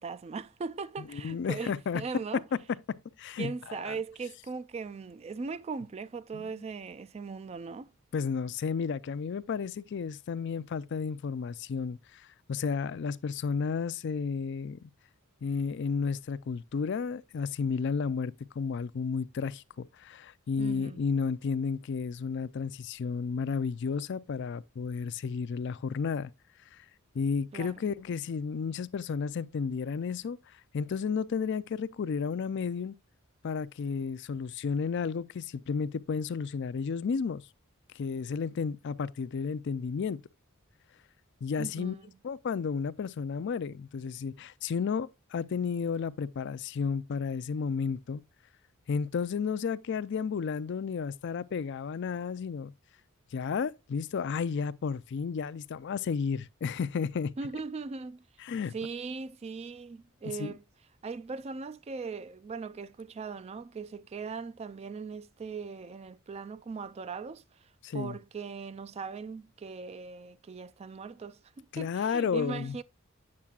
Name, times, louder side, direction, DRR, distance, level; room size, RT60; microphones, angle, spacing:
voice 1, 0.0-2.4 3.4-7.9 20.6-21.0 27.5-27.9 41.6-42.1 57.4-58.2 58.7-60.6 61.0-72.8, right 4 dB, 30° right, 0.3 m, -39 dB
voice 2, 1.0-2.0 2.5-2.6 2.9-4.0 6.3-6.5 8.1-14.8 15.4-26.3 26.8-26.9 27.1-30.4 30.7-32.9 33.4-37.4 37.9-40.2 41.4-42.0 42.2-48.2 48.9-52.7 53.3-57.3 58.4-58.7 60.4-60.5 67.8-68.2 71.7-72.8, left 5 dB, 55° left, 0.4 m, -32 dB
8.5 x 6.6 x 2.3 m
head